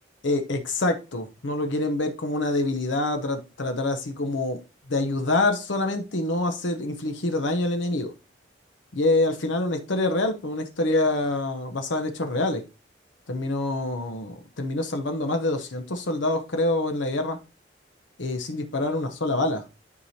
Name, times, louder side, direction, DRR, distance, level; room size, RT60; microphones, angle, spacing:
voice 1, 0.2-4.6 4.9-8.1 8.9-12.6 13.3-17.4 18.2-19.6, left 2 dB, 80° left, 0.9 m, -26 dB
9.6 x 4.8 x 2.8 m
head